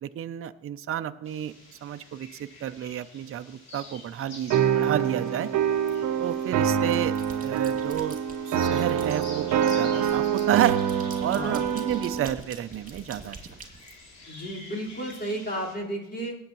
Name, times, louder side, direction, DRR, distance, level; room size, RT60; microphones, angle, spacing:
voice 1, 0.0-1.5 1.8-5.5 6.2-7.1 7.4-8.2 8.5-10.8 11.2-13.4, right 11 dB, 45° right, 10 dB, 0.6 m, -30 dB
sound 1, 1.2-15.7, left 2 dB, 60° left, 3.0 m, -48 dB
sound 2, 4.5-12.3, right 8 dB, 80° right, 0.9 m, -25 dB
sound 3, 5.9-6.4 6.8-8.4 8.8-14.5, right 3 dB, 25° right, 2.6 m, -46 dB
voice 2, 11.3-11.6 14.3-16.4, right 1 dB, 35° left, -5 dB, 4.4 m, -33 dB
17.0 x 8.7 x 3.1 m, 0.89 s
cardioid pair, 90°, 30 cm